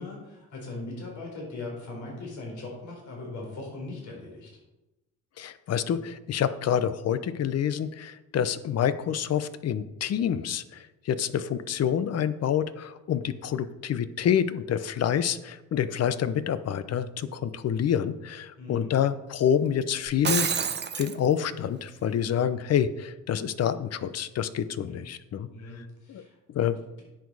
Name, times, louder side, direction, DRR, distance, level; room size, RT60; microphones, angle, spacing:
voice 1, 0.0-4.5 18.6-18.9 24.9-25.0 25.5-26.3, left 2 dB, 70° left, -2 dB, 4.2 m, -39 dB
voice 2, 5.4-10.6 11.1-20.7 21.0-25.5 26.1-26.2 26.5-26.8, left 9 dB, 55° left, 13 dB, 0.7 m, -27 dB
Shatter, 20.1-21.2, right 7 dB, 35° right, 0.7 m, -27 dB
10.0 x 7.4 x 4.8 m, 1.0 s
cardioid pair, 90°, 30 cm